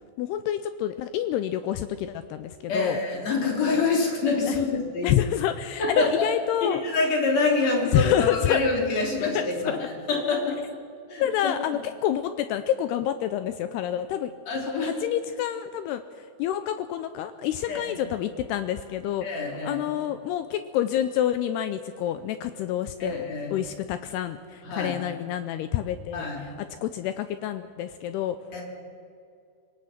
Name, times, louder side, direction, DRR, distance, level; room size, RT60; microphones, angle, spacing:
voice 1, 0.2-3.0 4.5-4.6 5.0-6.8 7.9-8.6 9.2-9.8 11.2-14.3 14.8-19.3 19.6-23.2 23.5-28.4, left 11 dB, 85° left, 10 dB, 2.3 m, -28 dB
voice 2, 2.7-5.2 5.8-6.3 6.6-9.7 10.1-10.6 11.1-11.5 14.5-14.9 17.7-18.1 19.2-19.8 23.0-23.5 24.6-25.0 26.1-26.4 28.5-28.6, left 3 dB, 40° left, -1 dB, 4.0 m, -26 dB
25.5 x 18.5 x 5.9 m, 2.5 s
omnidirectional pair, 5.4 m